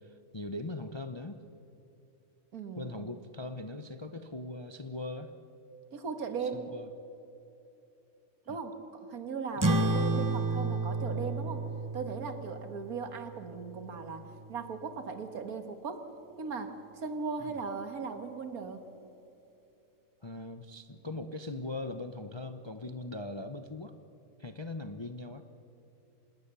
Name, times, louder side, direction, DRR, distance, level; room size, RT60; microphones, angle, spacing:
voice 1, 0.0-1.4 2.8-5.3 6.4-6.9 8.5-8.6 9.6-9.9 17.4-17.5 20.2-23.9 24.4-25.4, left 2 dB, 25° left, 8 dB, 0.6 m, -40 dB
voice 2, 2.5-3.1 5.9-6.7 8.5-11.7 11.9-16.1 16.4-18.9, right 5 dB, 70° right, 8 dB, 2.0 m, -38 dB
sound 1, 9.6-14.5, right 2 dB, 25° right, 0.4 m, -32 dB
26.0 x 20.5 x 6.9 m, 2.9 s
omnidirectional pair, 1.6 m